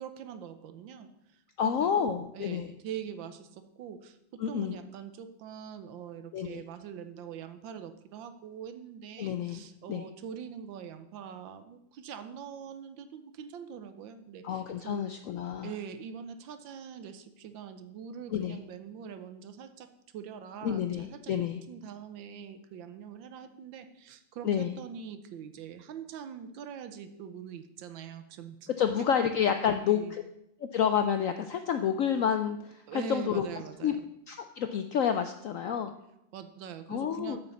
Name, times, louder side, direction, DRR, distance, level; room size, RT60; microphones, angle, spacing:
voice 1, 0.0-15.1 15.6-19.9 20.1-28.9 29.2-29.3 29.6-30.2 32.9-34.0 36.3-37.4, right 8 dB, 90° right, 10 dB, 1.5 m, -43 dB
voice 2, 1.6-2.7 4.4-4.8 6.3-6.6 9.2-9.6 9.9-10.1 14.4-15.7 18.3-18.6 20.6-21.6 24.4-24.7 28.8-30.2 30.6-33.5 33.8-33.9 34.3-35.9 36.9-37.4, left 8 dB, 85° left, 7 dB, 0.7 m, -29 dB
9.1 x 5.3 x 7.0 m, 0.81 s
omnidirectional pair, 2.0 m